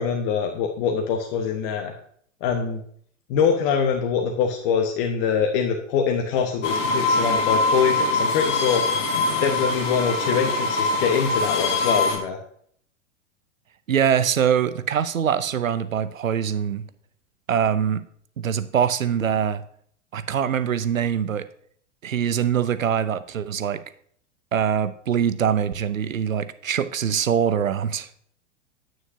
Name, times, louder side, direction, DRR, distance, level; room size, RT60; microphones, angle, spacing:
voice 1, 0.0-1.9 2.4-2.8 3.3-8.8 9.4-12.4, left 6 dB, 45° left, 3 dB, 1.2 m, -24 dB
sound 1, 6.6-12.2, left 3 dB, 60° left, 1.5 m, -23 dB
voice 2, 13.9-16.8 17.5-18.0 18.4-19.6 20.1-21.5 22.0-23.8 24.5-28.1, right 8 dB, 85° right, 14 dB, 0.7 m, -23 dB
9.4 x 9.0 x 2.7 m, 0.63 s
figure-of-eight pair, 95°, 39 cm